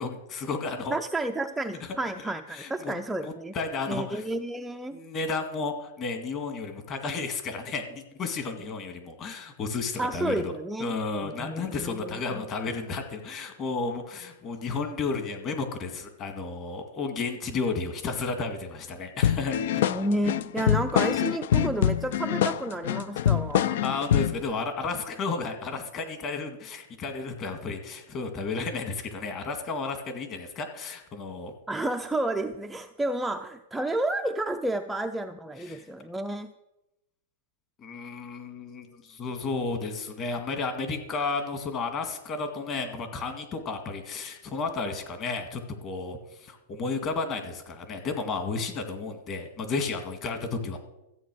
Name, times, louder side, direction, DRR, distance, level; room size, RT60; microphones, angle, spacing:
voice 1, 0.0-0.9 1.8-1.9 2.2-2.9 3.2-4.2 4.9-10.5 10.8-19.8 23.8-31.5 35.6-35.8 37.8-50.8, left 4 dB, 25° left, 6 dB, 1.9 m, -33 dB
voice 2, 0.9-3.5 3.9-5.0 10.0-11.0 11.2-12.4 19.9-23.8 31.7-36.5, right 1 dB, 5° right, 5 dB, 0.4 m, -31 dB
sound 1, 19.2-24.4, left 10 dB, 60° left, 0.6 m, -25 dB
14.0 x 8.5 x 6.2 m, 0.92 s
supercardioid pair, 155°, 0 cm